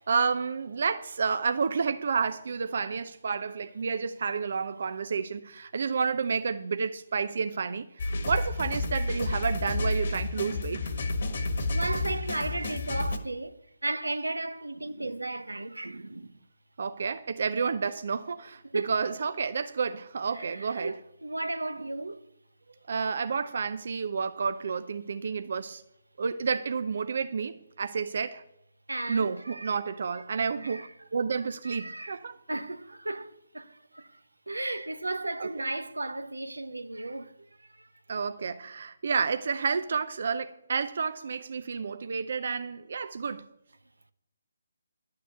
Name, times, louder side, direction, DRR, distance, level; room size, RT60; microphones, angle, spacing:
voice 1, 0.0-10.9 16.8-20.9 22.9-25.8 26.2-28.4 29.1-32.4 35.4-35.5 38.1-43.5, right 5 dB, 60° right, 0.6 m, -30 dB
sound 1, 8.0-13.2, left 2 dB, 55° left, 1.5 m, -30 dB
voice 2, 11.7-16.4 18.7-18.9 20.3-22.3 22.7-22.8 23.3-23.7 28.9-29.8 30.1-30.2 30.6-30.9 31.6-32.2 32.5-34.2 34.5-37.9, right 2 dB, 90° right, 0.9 m, -35 dB
11.5 x 6.7 x 9.3 m
figure-of-eight pair, 145°, 0 cm